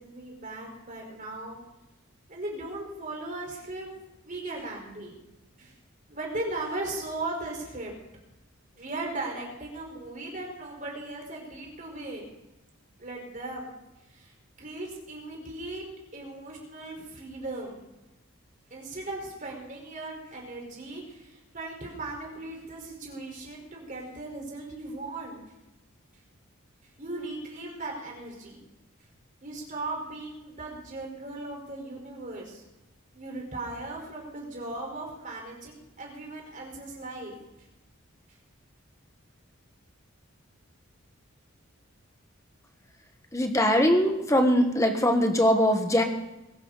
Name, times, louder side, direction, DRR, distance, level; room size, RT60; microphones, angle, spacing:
voice 1, 0.0-1.6 2.3-3.9 4.2-5.2 5.6-5.7 6.1-7.9 8.7-12.3 13.0-13.8 14.1-15.9 16.1-17.8 18.7-25.4 27.0-28.6 29.4-32.6 33.1-37.3, right 2 dB, 35° right, 0 dB, 4.6 m, -38 dB
voice 2, 43.3-46.0, equal, 15° left, 5 dB, 1.5 m, -22 dB
22.0 x 12.0 x 4.1 m, 0.98 s
head